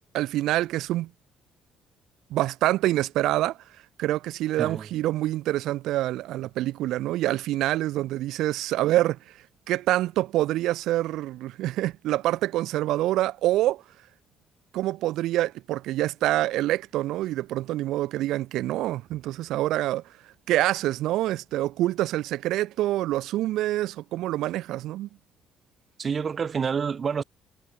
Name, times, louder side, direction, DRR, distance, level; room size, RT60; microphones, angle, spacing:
voice 1, 0.1-1.1 2.3-3.6 4.0-9.2 9.7-13.8 14.7-20.0 20.5-25.1, right 15 dB, 85° right, 1.1 m, -26 dB
voice 2, 26.0-27.2, right 6 dB, 35° right, 1.0 m, -28 dB
cardioid pair, 135°, 0 cm